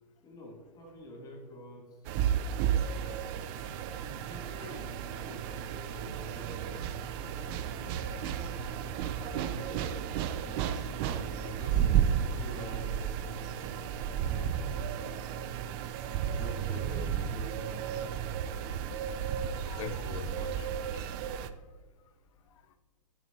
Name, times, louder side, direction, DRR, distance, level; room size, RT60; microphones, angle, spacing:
voice 1, 0.2-3.3 4.0-7.9 8.3-10.0 10.4-18.7, left 1 dB, 20° left, -2 dB, 3.2 m, -48 dB
sound 1, 2.0-21.5, right 9 dB, 35° right, 0.6 m, -33 dB
voice 2, 19.4-21.0 21.6-21.7 22.4-22.8, left 7 dB, 55° left, 8 dB, 1.0 m, -44 dB
12.0 x 10.5 x 3.0 m, 1.4 s
figure-of-eight pair, 105°, 20 cm